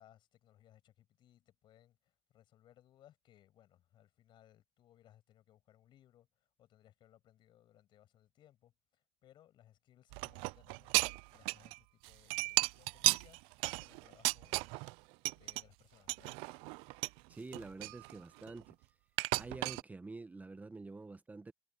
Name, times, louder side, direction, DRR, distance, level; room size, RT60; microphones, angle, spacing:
voice 1, 0.0-16.4, left 12 dB, 55° left, 7.2 m, -66 dB
sound 1, 10.1-11.8 12.0-14.9 15.3-15.6 16.1-17.2 17.5-18.7 19.2-19.8, right 26 dB, 75° right, 0.4 m, -34 dB
voice 2, 17.3-18.8 19.3-21.5, right 3 dB, 15° right, 1.2 m, -47 dB
supercardioid pair, 90°, 10 cm